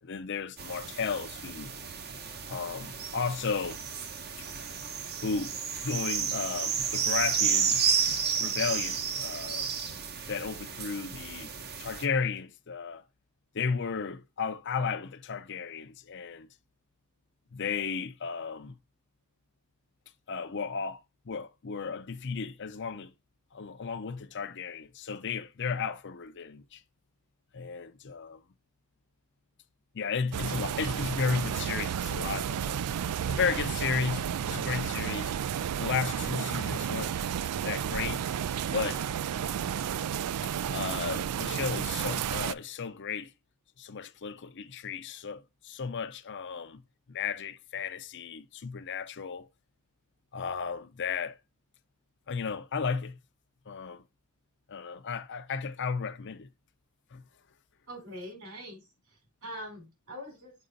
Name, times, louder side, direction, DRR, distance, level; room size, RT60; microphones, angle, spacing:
voice 1, 0.0-1.7 2.5-3.8 5.2-5.5 5.8-7.8 8.4-9.7 10.3-13.0 13.5-16.5 17.5-18.8 20.3-23.1 23.5-26.8 27.5-28.4 29.9-32.8 33.2-35.3 35.8-37.2 37.6-38.2 38.7-39.0 40.7-43.3 43.8-46.8 47.1-49.5 50.3-51.4 52.3-53.2 53.7-54.0 54.7-56.5 57.1-57.2, left 5 dB, 50° left, 0.6 m, -34 dB
sound 1, 0.6-12.1, right 7 dB, 45° right, 0.9 m, -32 dB
sound 2, 30.3-42.5, right 9 dB, 90° right, 0.4 m, -32 dB
voice 2, 57.9-60.5, equal, 65° right, 3.8 m, -43 dB
6.5 x 4.9 x 3.9 m
head